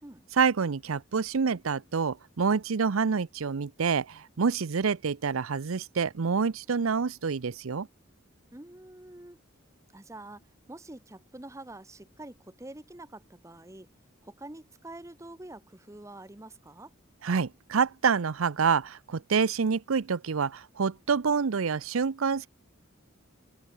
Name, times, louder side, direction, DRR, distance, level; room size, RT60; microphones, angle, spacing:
voice 1, 0.3-7.9 17.2-22.5, right 5 dB, 90° right, 0.6 m, -27 dB
voice 2, 8.5-9.4 9.9-10.4 10.7-13.9 14.2-16.9, right 2 dB, 15° right, 0.9 m, -46 dB
open air
head